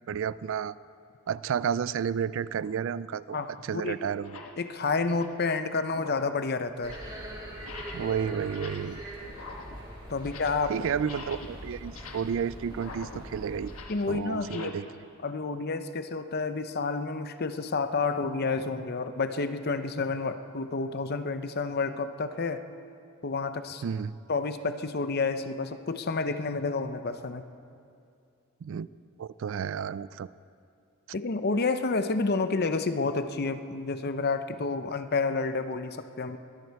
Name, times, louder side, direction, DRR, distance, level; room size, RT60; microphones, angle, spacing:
voice 1, 0.1-0.8 1.3-4.4 7.9-9.0 10.7-13.7 14.1-14.8 23.8-24.2 28.6-28.9 29.2-30.3, right 7 dB, 60° right, 18 dB, 0.3 m, -31 dB
sound 1, 2.6-2.8 3.5-3.6 4.1-4.6 5.0-5.5 5.9-6.4 6.7-7.2 7.6-8.1 8.4-9.0 9.3-10.7 11.0-14.7, left 3 dB, 75° left, 1.5 m, -45 dB
voice 2, 3.3-4.0 4.6-7.0 10.1-10.8 13.9-14.8 15.2-22.6 23.2-23.8 24.3-27.4 31.1-36.4, left 4 dB, 45° left, 10 dB, 0.7 m, -30 dB
sound 2, 6.8-13.8, right 1 dB, 20° right, 3.4 m, -42 dB
21.5 x 12.5 x 4.7 m, 2.4 s
head